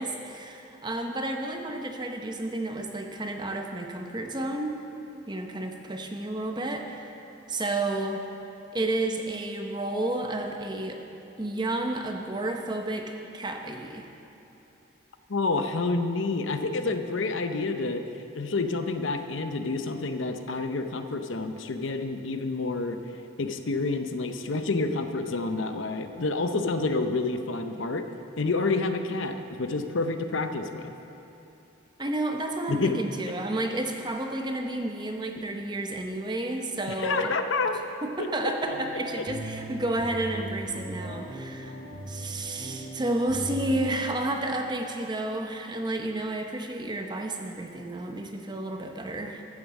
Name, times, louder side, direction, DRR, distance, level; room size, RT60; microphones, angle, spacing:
voice 1, 0.0-4.8 5.3-7.2 7.5-8.3 8.7-11.0 11.4-14.1 32.0-37.3 38.0-41.8 42.1-49.4, right 1 dB, 20° right, 3 dB, 0.7 m, -31 dB
voice 2, 15.3-18.0 18.3-23.0 23.4-28.1 28.4-30.9 32.7-32.9 37.0-37.8 38.2-38.5, left 3 dB, 65° left, 7 dB, 0.7 m, -28 dB
sound 1, 38.6-44.0, right 1 dB, 90° right, 2.9 m, -38 dB
14.0 x 7.2 x 7.2 m, 2.9 s
head